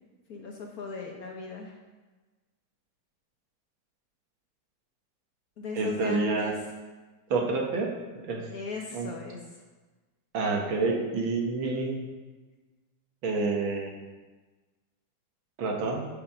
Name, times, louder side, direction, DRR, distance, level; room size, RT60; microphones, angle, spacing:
voice 1, 0.3-1.8 5.6-6.5 8.5-9.4, left 4 dB, 55° left, 0 dB, 1.2 m, -38 dB
voice 2, 5.8-6.5 7.3-7.9 8.2-8.5 8.9-9.1 10.3-12.1 13.2-13.9 15.6-16.1, right 3 dB, 70° right, 0 dB, 2.1 m, -28 dB
8.3 x 5.9 x 6.1 m, 1.3 s
omnidirectional pair, 2.3 m